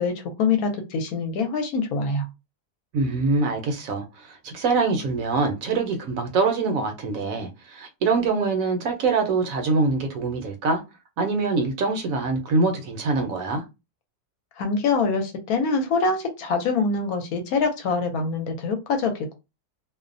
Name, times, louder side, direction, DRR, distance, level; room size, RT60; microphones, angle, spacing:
voice 1, 0.0-2.3 14.6-19.3, left 4 dB, 75° left, 1.0 m, -24 dB
voice 2, 2.9-10.8 11.2-13.6, right 3 dB, 70° right, 0.9 m, -24 dB
2.6 x 2.0 x 2.5 m
omnidirectional pair, 1.6 m